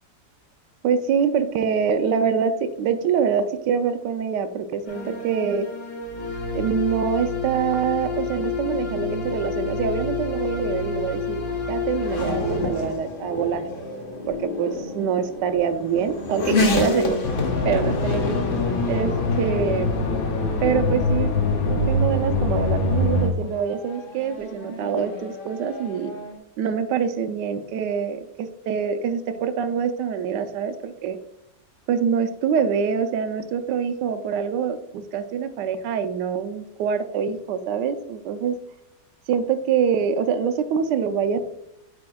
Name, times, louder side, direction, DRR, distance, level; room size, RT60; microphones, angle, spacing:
voice 1, 0.8-5.7 6.5-11.4 11.7-13.6 14.3-17.2 17.6-18.4 18.9-19.9 20.6-21.3 21.6-26.1 26.6-31.2 31.9-38.6 39.3-41.4, right 7 dB, 80° right, 9 dB, 1.2 m, -25 dB
sound 1, 4.9-12.9, left 4 dB, 85° left, 2.1 m, -29 dB
Race car auto racing / Accelerating revving vroom, 10.2-26.4, left 2 dB, 45° left, 0.8 m, -31 dB
sound 2, 17.2-23.3, left 2 dB, 60° left, 1.2 m, -23 dB
8.4 x 5.2 x 2.3 m, 0.79 s
omnidirectional pair, 1.9 m